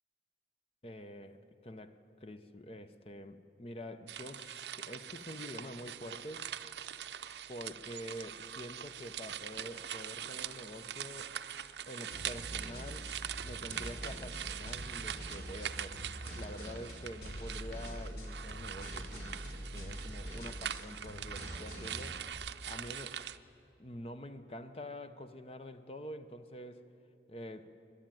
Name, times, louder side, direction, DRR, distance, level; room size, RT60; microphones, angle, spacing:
voice 1, 0.8-6.5 7.5-11.3 11.9-13.1 13.4-16.0 16.4-19.4 19.7-22.2 22.7-23.2 23.8-26.8 27.3-27.7, left 1 dB, 35° left, 9 dB, 0.8 m, -47 dB
sound 1, 4.1-23.4, right 9 dB, 75° right, 0.6 m, -43 dB
sound 2, 12.1-22.3, equal, 60° left, 4.2 m, -44 dB
26.0 x 12.0 x 9.1 m, 2.7 s
head